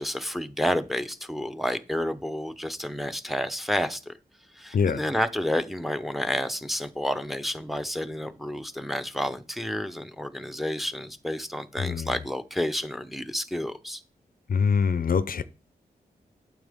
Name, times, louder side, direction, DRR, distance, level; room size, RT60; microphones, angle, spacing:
voice 1, 0.0-4.1 4.5-14.0, equal, ahead, 0.8 m, -30 dB
voice 2, 11.8-12.1 14.5-15.4, left 6 dB, 60° left, 0.6 m, -24 dB
9.0 x 7.5 x 3.6 m
cardioid pair, 65°, 17 cm